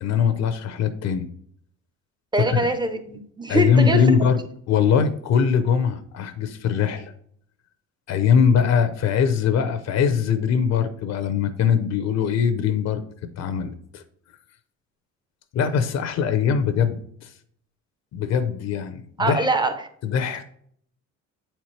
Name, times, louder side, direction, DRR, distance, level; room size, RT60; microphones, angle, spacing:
voice 1, 0.0-1.3 2.5-2.6 3.5-4.4 4.7-7.1 8.1-13.0 13.4-14.0 15.5-17.0 18.1-19.5 20.0-20.4, left 7 dB, 60° left, 9 dB, 0.7 m, -21 dB
voice 2, 2.3-4.3 19.2-19.9, right 2 dB, 15° right, 9 dB, 0.7 m, -24 dB
7.9 x 4.4 x 3.2 m, 0.65 s
cardioid pair, 125°, 30 cm